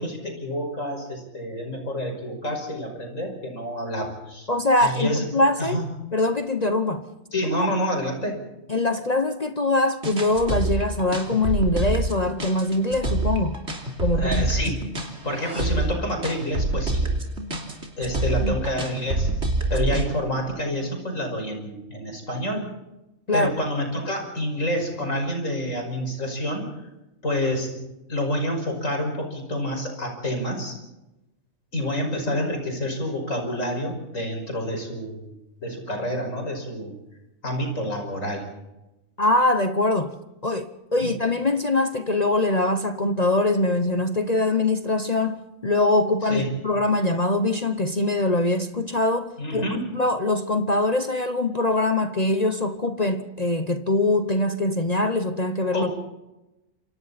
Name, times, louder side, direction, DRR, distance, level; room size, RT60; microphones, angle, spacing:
voice 1, 0.0-4.5 4.8-5.2 5.6-5.8 7.3-8.4 14.1-14.9 15.2-17.1 18.0-19.3 19.7-22.7 23.3-26.7 27.2-27.7 28.1-30.8 31.7-35.3 35.6-36.9 37.4-38.5 41.0-41.1 46.3-46.5 49.4-49.8 55.7-56.0, equal, 70° left, 6.0 m, -28 dB
voice 2, 4.5-5.8 6.1-7.1 7.5-7.7 8.7-13.6 14.0-14.5 18.4-18.6 23.3-23.5 39.2-40.1 40.4-56.1, left 2 dB, 35° left, 1.0 m, -23 dB
sound 1, 10.0-20.1, right 2 dB, 55° right, 3.5 m, -26 dB
28.5 x 25.5 x 4.2 m
omnidirectional pair, 1.4 m